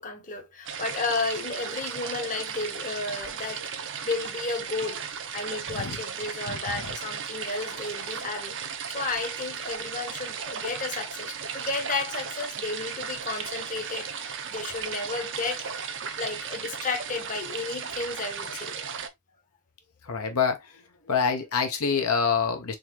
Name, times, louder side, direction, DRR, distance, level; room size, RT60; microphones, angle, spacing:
voice 1, 0.0-3.7 4.0-8.6 8.9-15.8 16.2-18.9, left 3 dB, 35° left, 0.8 m, -33 dB
sound 1, 0.6-19.1, right 7 dB, 60° right, 0.6 m, -36 dB
voice 2, 20.1-20.6 21.1-22.8, left 6 dB, 85° left, 0.9 m, -26 dB
3.8 x 3.0 x 2.9 m
head